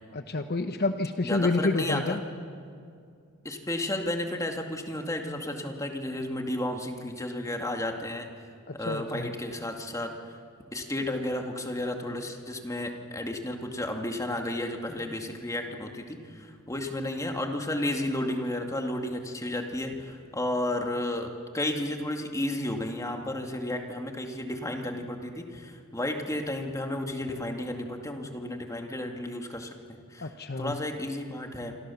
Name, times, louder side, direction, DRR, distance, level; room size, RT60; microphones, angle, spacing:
voice 1, 0.1-2.2 8.7-9.3 30.2-30.8, left 2 dB, 50° left, 8 dB, 1.0 m, -29 dB
voice 2, 1.2-2.2 3.4-8.3 8.7-10.4 10.7-29.7 30.1-30.3 30.6-31.7, left 1 dB, 15° left, 3 dB, 2.2 m, -32 dB
27.5 x 25.5 x 7.1 m, 2.3 s
head